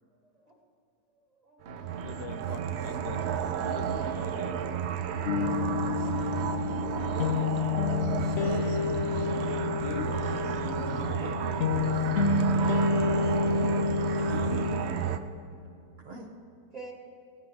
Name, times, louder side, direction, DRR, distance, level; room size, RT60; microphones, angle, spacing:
voice 1, 0.1-0.6 1.1-1.7 6.0-8.1 11.0-11.5 15.5-15.7 16.7-16.9, right 2 dB, 25° right, 0 dB, 1.8 m, -50 dB
sound 1, 1.6-15.2, right 8 dB, 60° right, 0.7 m, -32 dB
voice 2, 2.0-3.3 3.6-4.6 9.7-10.1, left 7 dB, 80° left, 10 dB, 1.2 m, -42 dB
sound 2, 5.3-14.8, left 3 dB, 65° left, 0.8 m, -28 dB
voice 3, 9.8-10.2 10.5-12.1 14.2-14.5 16.0-16.3, right 2 dB, 45° right, 0 dB, 1.2 m, -43 dB
18.0 x 15.0 x 3.1 m, 2.6 s
omnidirectional pair, 1.7 m